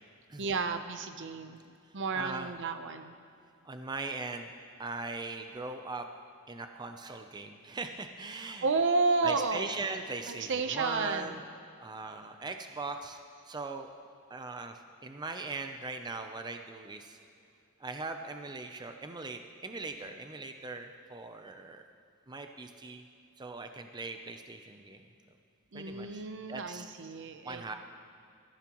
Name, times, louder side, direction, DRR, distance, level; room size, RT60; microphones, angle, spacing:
voice 1, 0.4-1.6 1.9-3.1 8.6-9.7 10.3-11.4 25.7-27.8, right 4 dB, 60° right, 8 dB, 0.8 m, -31 dB
voice 2, 2.1-2.5 3.6-4.5 4.8-6.1 6.5-8.7 9.2-11.4 11.8-13.2 13.5-13.9 14.3-17.2 17.8-21.8 22.3-23.0 23.4-25.1 25.7-26.9 27.4-27.7, right 3 dB, 20° right, 6 dB, 0.5 m, -40 dB
21.0 x 14.0 x 3.0 m, 2.5 s
head